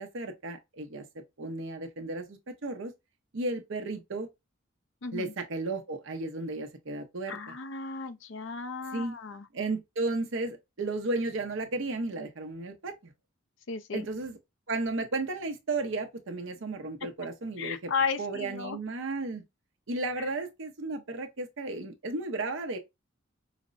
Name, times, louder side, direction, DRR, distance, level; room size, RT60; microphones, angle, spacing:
voice 1, 0.0-2.9 3.3-4.3 5.1-7.6 8.9-9.2 9.5-13.1 13.9-14.4 14.7-17.9 18.2-19.4 19.9-22.8, right 2 dB, 70° right, 0.8 m, -34 dB
voice 2, 5.0-5.3 7.3-9.5 13.7-14.0 17.6-18.8 20.2-20.3, left 5 dB, 70° left, 0.6 m, -34 dB
5.0 x 2.1 x 2.5 m
head